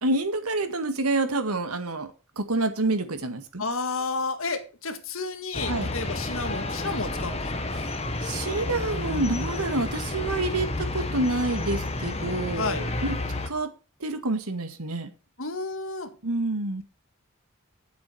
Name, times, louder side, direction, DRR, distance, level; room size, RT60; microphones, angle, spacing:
voice 1, 0.0-3.6 5.7-5.9 8.2-13.2 13.5-13.7 14.0-15.1 16.2-16.8, right 2 dB, 90° right, 1.9 m, -28 dB
voice 2, 3.6-7.4 12.6-12.8 15.4-16.1, left 3 dB, 70° left, 1.9 m, -31 dB
sound 1, 5.5-13.5, left 2 dB, 30° left, 1.5 m, -31 dB
9.9 x 7.9 x 6.3 m
head